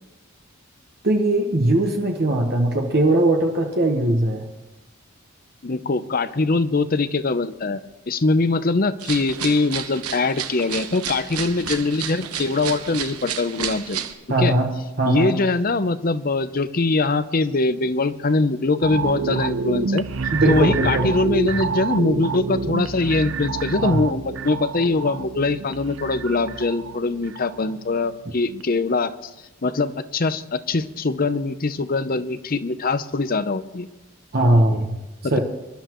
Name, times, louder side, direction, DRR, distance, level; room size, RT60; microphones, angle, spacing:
voice 1, 1.0-4.5 14.3-14.7 15.0-15.3 20.3-21.1 23.8-24.0 34.3-35.0 35.3-35.4, right 1 dB, 45° right, 2 dB, 1.2 m, -20 dB
voice 2, 5.6-14.0 14.4-14.5 15.0-20.1 20.5-29.3 29.6-33.9 35.2-35.4, left 3 dB, 40° left, 13 dB, 0.6 m, -22 dB
sound 1, 9.0-14.1, right 8 dB, 85° right, 1.1 m, -31 dB
sound 2, 18.8-28.1 28.5-28.6, right 4 dB, 60° right, 0.7 m, -28 dB
26.0 x 12.5 x 3.1 m, 1.0 s
head